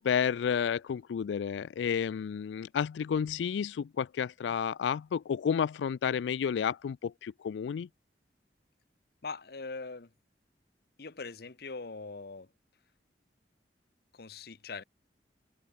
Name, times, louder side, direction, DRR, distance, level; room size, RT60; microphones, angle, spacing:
voice 1, 0.0-7.9, left 7 dB, 90° left, 0.3 m, -31 dB
voice 2, 9.2-10.1 11.0-12.5 14.1-14.8, left 4 dB, 60° left, 0.9 m, -41 dB
head